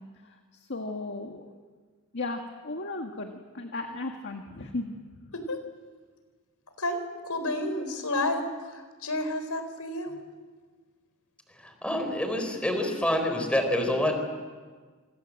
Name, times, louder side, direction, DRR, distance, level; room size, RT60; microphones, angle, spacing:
voice 1, 0.7-1.5 2.1-4.9, left 2 dB, 55° left, 4 dB, 1.8 m, -35 dB
voice 2, 7.2-8.4 8.7-10.2, left 2 dB, 85° left, 8 dB, 4.0 m, -30 dB
voice 3, 11.6-14.3, left 1 dB, 5° left, 4 dB, 4.3 m, -27 dB
27.5 x 26.0 x 7.7 m, 1.5 s
head